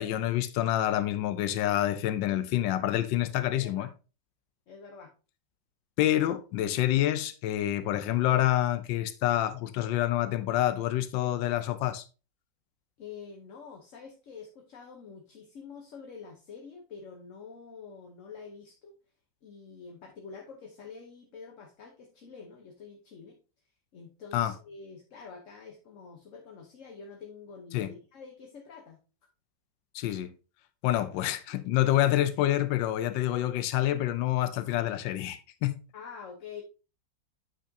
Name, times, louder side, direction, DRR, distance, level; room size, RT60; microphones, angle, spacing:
voice 1, 0.0-3.9 6.0-12.0 24.3-24.5 27.7-27.9 29.9-30.3 30.8-35.8, left 13 dB, 90° left, 1.3 m, -27 dB
voice 2, 3.5-3.9 4.7-5.1 13.0-18.9 19.4-23.4 23.9-29.0 35.9-36.6, left 5 dB, 50° left, 1.1 m, -47 dB
8.8 x 5.6 x 2.7 m
omnidirectional pair, 1.9 m